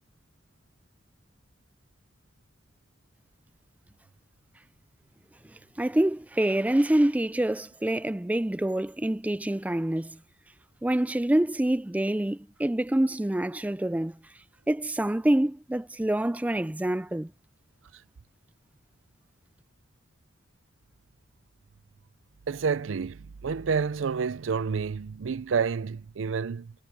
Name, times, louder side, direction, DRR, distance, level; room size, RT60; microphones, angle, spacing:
voice 1, 5.5-10.2 10.8-14.2 14.7-17.3, right 1 dB, 10° right, 0.3 m, -26 dB
voice 2, 22.5-26.7, right 5 dB, 80° right, 0.5 m, -29 dB
head